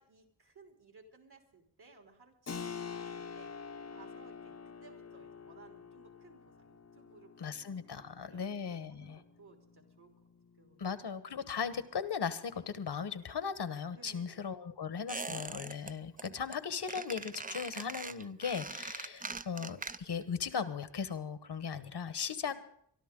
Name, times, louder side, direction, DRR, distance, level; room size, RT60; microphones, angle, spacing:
voice 1, 0.0-3.5 3.8-8.5 8.9-10.1 10.6-11.0 11.6-11.8 13.9-14.4 22.3-22.6, right 4 dB, 60° right, 3 dB, 3.4 m, -60 dB
Keyboard (musical), 2.5-12.8, left 6 dB, 35° left, 0.8 m, -48 dB
voice 2, 7.4-9.2 10.8-22.6, left 6 dB, 65° left, 13 dB, 1.2 m, -38 dB
Squeak, 15.1-15.9 16.2-16.6 16.9-20.3 20.5-20.6, right 3 dB, 20° right, 0.6 m, -42 dB
23.0 x 12.5 x 3.8 m, 0.67 s
wide cardioid pair, 75°, 43 cm